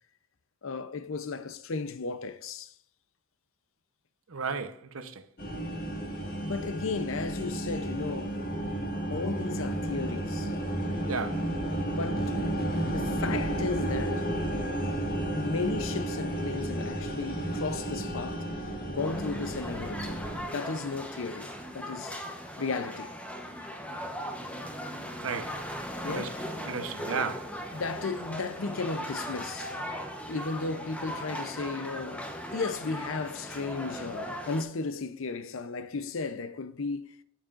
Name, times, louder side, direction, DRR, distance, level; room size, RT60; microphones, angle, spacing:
voice 1, 0.6-2.7 6.4-8.4 9.1-10.5 11.8-12.4 12.9-14.3 15.3-18.5 18.9-20.2 20.5-22.2 22.6-23.1 26.0-26.4 27.7-29.7 30.3-37.1, left 4 dB, 70° left, 0.6 m, -35 dB
voice 2, 4.3-5.2 11.1-11.4 25.2-25.5 26.0-26.3 26.7-27.5, right 5 dB, 75° right, 0.9 m, -34 dB
sound 1, 5.4-20.5, right 1 dB, 45° left, 1.8 m, -32 dB
sound 2, 19.0-34.6, equal, 5° left, 0.9 m, -38 dB
9.1 x 8.7 x 2.5 m
head